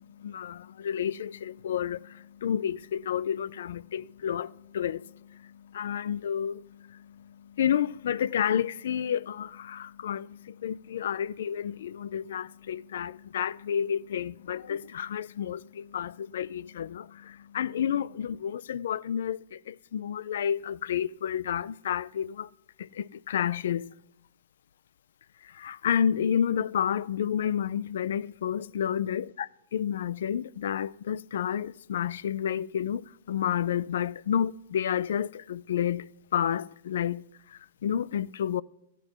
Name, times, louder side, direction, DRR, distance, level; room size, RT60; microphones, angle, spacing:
voice 1, 0.0-22.5 22.8-23.9 25.4-36.1 36.3-37.3 37.5-38.6, left 9 dB, 75° left, 0.3 m, -30 dB
13.0 x 9.9 x 4.4 m
hypercardioid pair, 125°, 0 cm